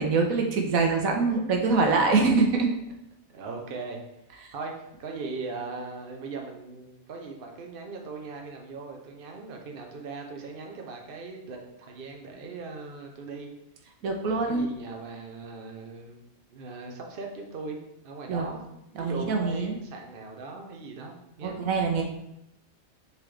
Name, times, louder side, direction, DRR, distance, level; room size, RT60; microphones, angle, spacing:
voice 1, 0.0-2.7 14.0-14.7 18.3-18.4 19.0-19.8 21.4-22.0, right 4 dB, 85° right, 2 dB, 1.3 m, -24 dB
voice 2, 1.2-1.6 1.9-2.3 3.3-4.0 4.5-13.5 14.3-16.2 16.5-17.8 18.0-18.7 19.0-21.6, right 4 dB, 45° right, 1 dB, 1.0 m, -39 dB
7.1 x 4.0 x 3.4 m, 0.83 s
omnidirectional pair, 1.4 m